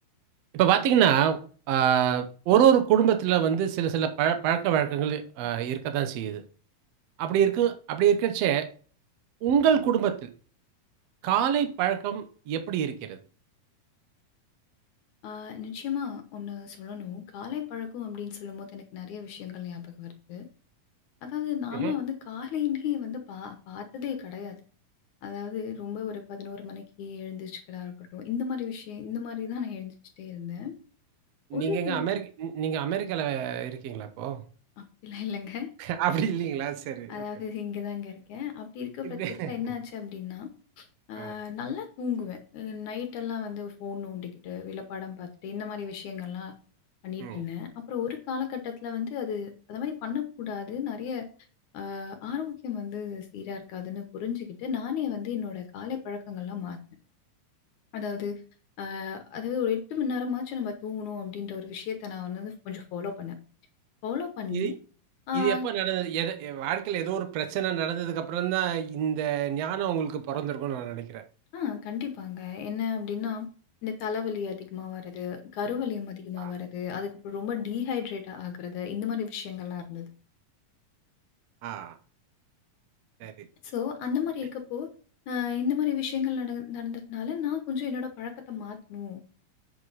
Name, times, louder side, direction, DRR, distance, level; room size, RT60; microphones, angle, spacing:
voice 1, 0.5-1.4 1.7-6.4 7.2-8.7 9.4-10.3 11.2-13.2 21.7-21.9 31.5-34.4 35.8-37.2 39.0-39.5 41.2-41.4 47.2-47.4 64.5-64.7 65.3-71.2 76.4-76.5 81.6-81.9 83.2-83.3, right 9 dB, 75° right, 1.5 m, -26 dB
voice 2, 15.2-20.5 21.2-24.6 25.2-30.8 31.5-32.1 34.8-35.7 37.1-46.6 47.0-51.3 51.7-56.8 57.9-58.4 58.8-63.4 64.0-64.8 65.3-65.7 71.5-73.5 73.8-80.1 83.6-84.9 85.3-89.2, left 7 dB, 70° left, 2.1 m, -34 dB
8.7 x 6.5 x 4.0 m
omnidirectional pair, 4.1 m